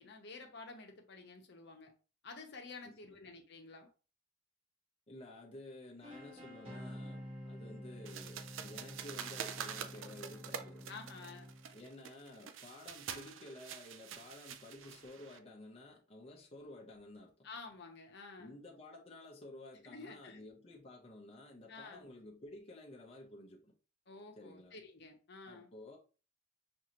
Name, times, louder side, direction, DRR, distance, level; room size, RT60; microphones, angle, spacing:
voice 1, 0.0-1.9 2.2-3.9 10.9-11.5 17.4-18.5 19.8-20.4 21.7-22.1 24.1-25.7, left 3 dB, 60° left, 0.8 m, -51 dB
voice 2, 2.8-3.2 5.1-10.9 11.7-17.5 18.4-23.7 24.3-24.8 25.4-26.0, left 1 dB, 30° left, 0.7 m, -52 dB
sound 1, 6.0-11.9, equal, 30° right, 1.3 m, -50 dB
sound 2, 8.0-15.4, right 8 dB, 75° right, 0.5 m, -46 dB
6.2 x 2.6 x 2.9 m
head